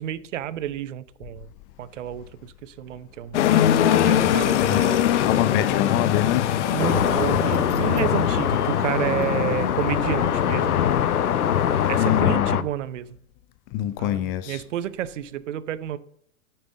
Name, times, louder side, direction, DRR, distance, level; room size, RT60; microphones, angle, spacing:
voice 1, 0.0-1.5 1.8-3.5 4.0-5.0 6.7-10.7 11.9-13.1 14.0-16.0, right 11 dB, 55° right, 0.8 m, -30 dB
sound 1, 3.3-12.2, left 10 dB, 50° left, 1.0 m, -23 dB
voice 2, 4.6-6.5 12.0-12.7 13.7-14.6, left 11 dB, 30° left, 0.6 m, -26 dB
sound 2, 6.8-12.6, left 9 dB, 80° left, 0.7 m, -23 dB
10.0 x 8.9 x 5.2 m
figure-of-eight pair, 105°, 44 cm